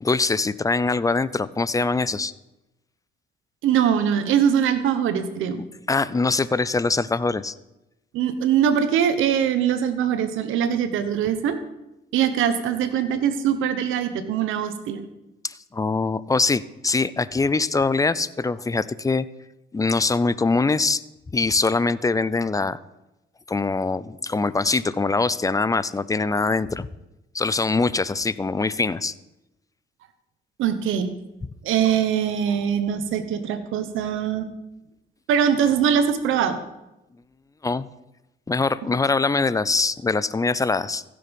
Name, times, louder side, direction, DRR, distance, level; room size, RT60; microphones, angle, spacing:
voice 1, 0.0-2.3 5.9-7.6 15.4-19.3 19.7-21.0 21.3-22.8 23.5-26.9 27.3-29.1 37.6-37.9 38.5-41.0, left 3 dB, 15° left, 17 dB, 0.5 m, -23 dB
voice 2, 3.6-5.6 8.1-11.6 12.1-15.0 30.6-31.1 31.6-34.5 35.3-36.6, right 8 dB, 90° right, 10 dB, 1.1 m, -22 dB
15.5 x 6.8 x 5.3 m, 0.95 s
cardioid pair, 90°, 20 cm